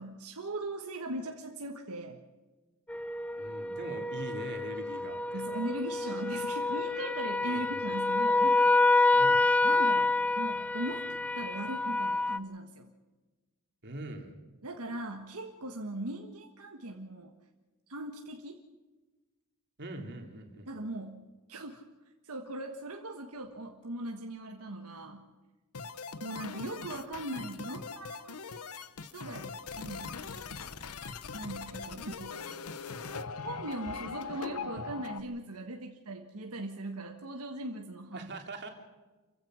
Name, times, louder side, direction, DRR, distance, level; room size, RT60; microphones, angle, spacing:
voice 1, 0.0-2.2 5.3-8.7 9.6-12.9 14.6-17.3 17.9-18.6 20.7-21.2 21.5-21.8 22.2-25.3 26.2-28.4 29.1-30.1 31.3-32.4 32.8-32.9 33.4-38.3, right 1 dB, 80° right, 3 dB, 1.5 m, -39 dB
sound 1, 2.9-12.4, left 3 dB, 5° left, 0.5 m, -28 dB
voice 2, 3.4-5.5 7.4-7.8 9.1-9.5 13.8-14.3 19.8-20.7 38.1-38.7, right 2 dB, 50° right, 3 dB, 3.1 m, -42 dB
sound 2, 25.7-35.2, left 5 dB, 85° left, 1.0 m, -41 dB
28.5 x 15.5 x 6.3 m, 1.2 s
head